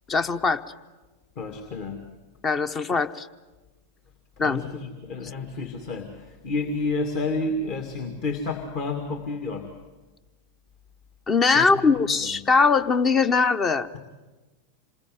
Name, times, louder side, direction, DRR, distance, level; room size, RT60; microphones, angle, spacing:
voice 1, 0.1-0.6 2.4-3.3 4.4-4.7 11.3-13.9, left 4 dB, 25° left, 12 dB, 0.9 m, -21 dB
voice 2, 1.4-2.0 4.4-9.7 11.5-12.3, left 3 dB, 45° left, 5 dB, 2.2 m, -30 dB
27.5 x 21.0 x 9.3 m, 1.2 s
figure-of-eight pair, 90°, 0 cm